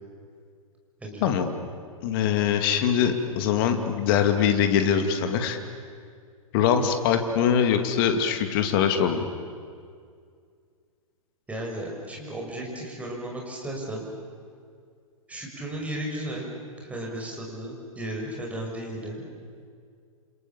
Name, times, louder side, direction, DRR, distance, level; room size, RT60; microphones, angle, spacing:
voice 1, 2.0-5.6 6.5-9.3, left 8 dB, 40° left, 6 dB, 2.6 m, -23 dB
voice 2, 11.5-14.0 15.3-16.5 16.8-19.3, right 1 dB, 10° right, -1 dB, 6.2 m, -34 dB
28.5 x 27.5 x 7.4 m, 2.2 s
figure-of-eight pair, 105°, 18 cm